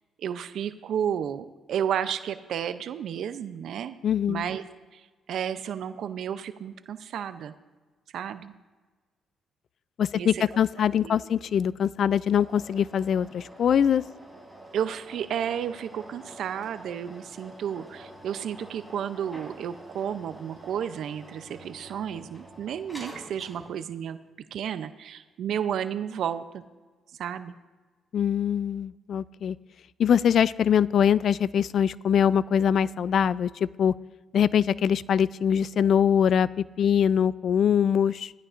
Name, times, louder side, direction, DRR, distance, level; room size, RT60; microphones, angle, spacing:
voice 1, 0.2-4.0 4.3-4.6 4.9-5.0 5.3-7.5 8.1-8.5 10.1-10.4 11.0-11.2 14.7-24.2 24.5-26.6 27.2-27.5, right 9 dB, 70° right, 11 dB, 0.5 m, -32 dB
voice 2, 4.0-4.5 10.0-14.0 28.1-29.6 30.0-33.9 34.3-38.3, left 8 dB, 60° left, 20 dB, 0.3 m, -23 dB
sound 1, 12.2-23.9, right 1 dB, 5° left, 3.5 m, -47 dB
16.5 x 14.5 x 2.5 m, 1.4 s
cardioid pair, 90°, 0 cm